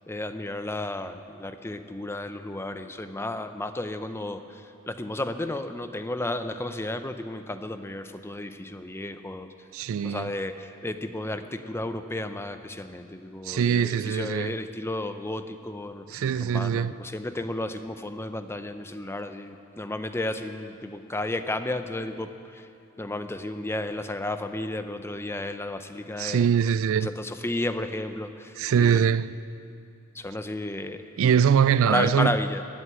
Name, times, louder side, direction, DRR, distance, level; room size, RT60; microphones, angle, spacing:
voice 1, 0.1-9.5 10.0-22.7 23.0-26.5 27.0-29.1 30.1-31.1 31.8-32.6, left 1 dB, 10° left, 0.6 m, -33 dB
voice 2, 9.7-10.3 13.4-14.5 16.1-16.9 26.2-27.1 28.6-29.3 31.2-32.4, right 7 dB, 65° right, 0.3 m, -22 dB
15.5 x 8.0 x 9.8 m
head